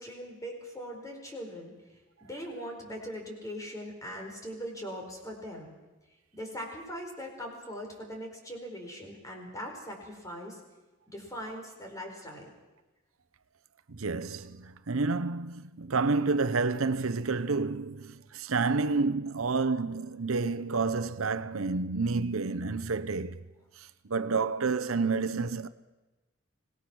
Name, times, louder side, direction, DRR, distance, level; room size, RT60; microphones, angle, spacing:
voice 1, 0.0-1.7 2.2-5.7 6.3-10.6 11.1-12.5, equal, 15° left, 4.7 m, -41 dB
voice 2, 13.9-23.4 23.8-25.7, right 4 dB, 85° right, 0.9 m, -29 dB
25.5 x 18.0 x 6.3 m
head